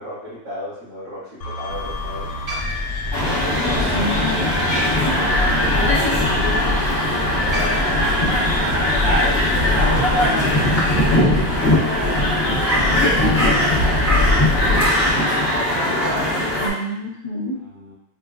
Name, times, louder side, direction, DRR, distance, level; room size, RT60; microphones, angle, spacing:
voice 1, 0.0-2.3 3.1-3.6 4.7-8.2 8.9-15.4 17.6-17.9, left 1 dB, 90° right, -15 dB, 2.2 m, -35 dB
sound 1, 1.4-11.0, left 3 dB, 80° left, 1.1 m, -31 dB
Crow, 1.7-15.1, left 2 dB, 55° right, 0.4 m, -25 dB
sound 2, 3.1-16.7, left 1 dB, 55° left, 1.5 m, -20 dB
voice 2, 3.5-4.5 5.1-5.2 16.6-17.6, equal, 30° left, -6 dB, 0.6 m, -27 dB
4.7 x 2.2 x 2.4 m, 0.80 s
omnidirectional pair, 1.8 m